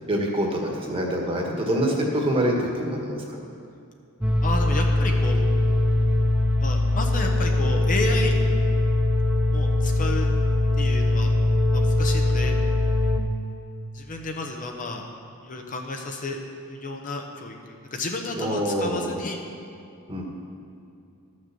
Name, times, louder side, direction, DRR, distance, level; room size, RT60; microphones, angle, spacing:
voice 1, 0.1-3.4 18.3-19.2 20.1-20.2, equal, 25° right, -1 dB, 1.6 m, -25 dB
sound 1, 4.2-13.2, left 1 dB, 5° right, 0.6 m, -21 dB
voice 2, 4.4-5.4 6.6-8.3 9.5-10.3 10.8-11.3 11.7-12.5 13.9-15.1 15.4-16.4 16.7-19.4, left 2 dB, 40° left, 2 dB, 0.9 m, -31 dB
13.0 x 6.5 x 6.7 m, 2.5 s
head